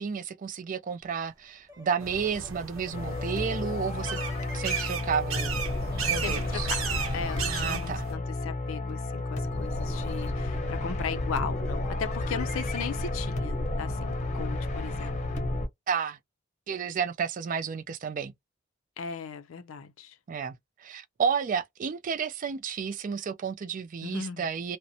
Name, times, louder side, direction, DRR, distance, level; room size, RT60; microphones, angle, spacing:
voice 1, 0.0-4.2 4.5-5.6 6.0-6.7 7.5-8.0 15.9-16.2 16.7-18.3 20.3-20.5 20.8-24.8, right 6 dB, 40° right, 0.3 m, -31 dB
sound 1, 1.0-7.4, left 1 dB, 20° right, 0.7 m, -49 dB
sound 2, 2.0-8.1, right 7 dB, 75° right, 0.8 m, -35 dB
sound 3, 2.9-15.7, left 2 dB, 35° left, 0.7 m, -31 dB
voice 2, 6.2-15.2 19.0-20.2 24.0-24.5, left 6 dB, 75° left, 0.4 m, -37 dB
2.5 x 2.1 x 2.6 m
head